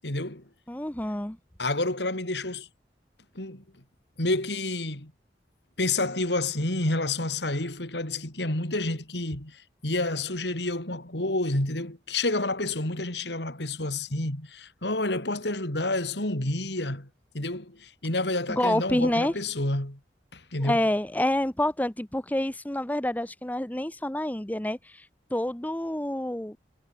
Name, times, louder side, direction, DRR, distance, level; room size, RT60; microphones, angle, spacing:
voice 1, 0.0-0.4 1.6-2.7 3.3-3.6 4.2-5.1 5.8-17.1 17.3-20.0 20.3-20.8, left 2 dB, 70° left, 4.1 m, -29 dB
voice 2, 0.7-1.4 18.5-19.3 20.6-25.0 25.3-26.6, left 1 dB, 10° left, 0.8 m, -28 dB
head